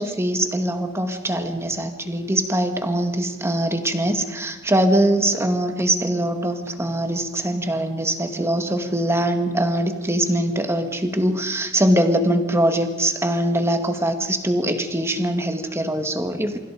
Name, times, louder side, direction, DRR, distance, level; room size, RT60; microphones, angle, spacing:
voice 1, 0.0-16.6, right 1 dB, 15° right, 6 dB, 2.0 m, -22 dB
28.0 x 25.0 x 5.2 m, 1.2 s
head